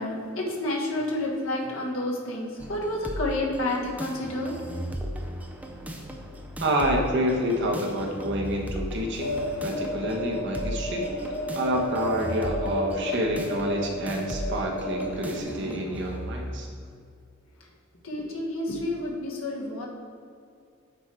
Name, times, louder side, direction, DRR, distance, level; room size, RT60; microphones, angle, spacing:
voice 1, 0.0-4.7 18.0-19.9, left 1 dB, 85° left, -2 dB, 1.6 m, -30 dB
sound 1, 2.6-16.6, equal, 10° right, 0.6 m, -37 dB
voice 2, 6.6-9.4 9.6-11.1 11.5-16.7, equal, 65° right, 0 dB, 1.1 m, -28 dB
sound 2, 9.2-15.4, left 1 dB, 50° left, 1.0 m, -32 dB
8.1 x 4.6 x 4.6 m, 2.3 s
head